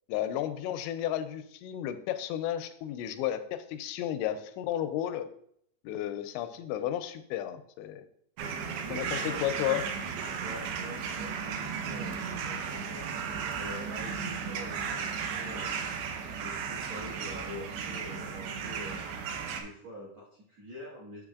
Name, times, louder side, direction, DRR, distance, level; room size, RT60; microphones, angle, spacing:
voice 1, 0.1-5.3 5.8-8.0 8.9-9.8, left 11 dB, 90° left, 9 dB, 2.9 m, -33 dB
sound 1, 8.4-19.6, right 6 dB, 80° right, 2.9 m, -35 dB
voice 2, 8.5-9.4 10.4-16.0 16.2-19.0 19.5-21.2, equal, 65° right, -6 dB, 1.7 m, -46 dB
8.7 x 7.2 x 2.4 m, 0.68 s
omnidirectional pair, 5.1 m